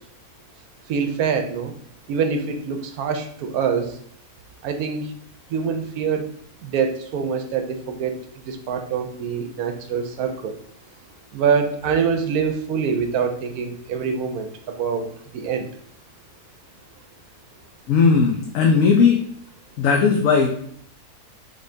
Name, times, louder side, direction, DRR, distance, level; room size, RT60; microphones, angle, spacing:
voice 1, 0.9-1.7 2.1-4.0 4.6-5.1 5.5-6.3 6.6-8.2 8.5-10.6 11.3-15.7, right 6 dB, 80° right, 6 dB, 1.1 m, -25 dB
voice 2, 17.9-19.2 19.8-20.5, left 5 dB, 65° left, 1 dB, 1.0 m, -17 dB
5.3 x 3.6 x 2.7 m, 0.65 s
omnidirectional pair, 1.6 m